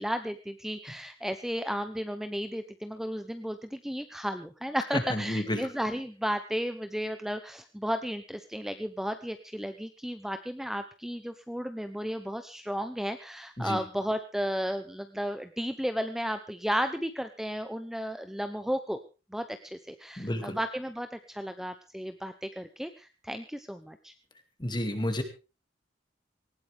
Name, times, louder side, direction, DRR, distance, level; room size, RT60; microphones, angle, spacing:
voice 1, 0.0-19.0 19.3-24.1, equal, ahead, 9 dB, 0.8 m, -34 dB
voice 2, 4.9-5.7 13.6-13.8 20.2-20.6 24.6-25.2, left 1 dB, 25° left, 7 dB, 2.3 m, -30 dB
19.0 x 17.0 x 3.5 m, 0.32 s
head